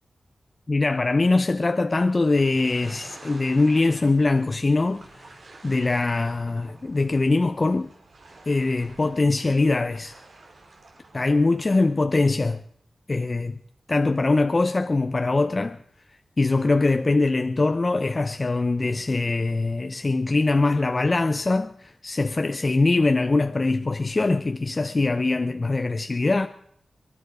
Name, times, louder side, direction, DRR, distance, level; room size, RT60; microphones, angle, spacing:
voice 1, 0.7-5.3 5.6-7.9 8.5-10.1 11.1-12.6 13.1-13.6 13.9-15.8 16.4-26.5, left 3 dB, 40° left, 0.7 m, -22 dB
sound 1, 2.3-11.9, right 3 dB, 70° right, 3.3 m, -49 dB
23.5 x 10.5 x 4.9 m
cardioid pair, 65°, 0 cm